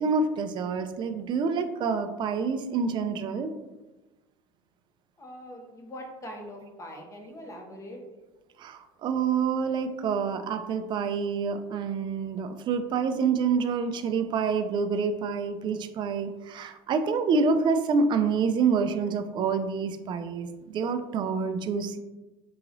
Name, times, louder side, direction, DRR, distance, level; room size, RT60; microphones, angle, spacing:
voice 1, 0.0-3.5 8.6-22.0, right 5 dB, 35° right, 9 dB, 0.3 m, -27 dB
voice 2, 5.2-8.0, equal, 25° left, 1 dB, 0.9 m, -42 dB
3.8 x 2.9 x 2.5 m, 1.1 s
supercardioid pair, 95°, 13 cm